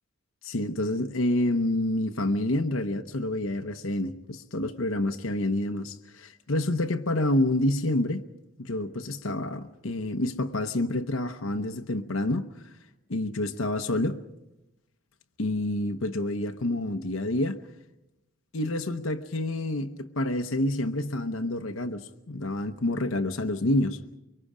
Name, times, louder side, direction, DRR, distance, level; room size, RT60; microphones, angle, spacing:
voice 1, 0.4-8.2 8.6-12.5 13.1-14.2 15.4-17.6 18.5-24.0, left 1 dB, 65° left, 0.9 m, -28 dB
25.0 x 23.5 x 5.0 m
head